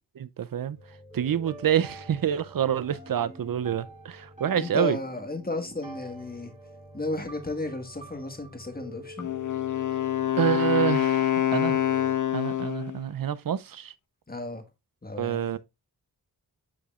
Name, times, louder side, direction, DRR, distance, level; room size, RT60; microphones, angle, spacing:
voice 1, 0.2-0.8 1.1-5.0 10.4-11.8 12.3-13.9 15.2-15.6, right 10 dB, 55° right, 0.5 m, -27 dB
sound 1, 0.7-12.1, equal, 15° right, 2.5 m, -47 dB
voice 2, 4.6-6.5 6.9-9.3 14.3-14.6 15.0-15.6, left 2 dB, 20° left, 1.5 m, -33 dB
Wind instrument woodwind instrument, 9.2-13.0, left 12 dB, 45° left, 0.8 m, -26 dB
8.5 x 4.9 x 2.4 m
cardioid pair, 55°, 41 cm